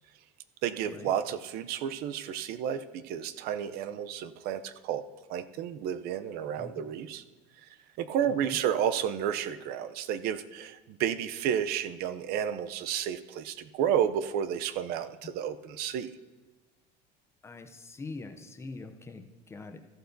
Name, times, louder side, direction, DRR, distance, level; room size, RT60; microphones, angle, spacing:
voice 1, 0.6-5.0 5.3-7.2 8.0-16.1, right 9 dB, 50° right, 12 dB, 0.5 m, -31 dB
voice 2, 8.2-8.6 15.2-15.3 17.4-19.8, left 3 dB, 15° left, 7 dB, 0.5 m, -44 dB
14.0 x 11.0 x 2.6 m, 1.2 s
cardioid pair, 165°, 21 cm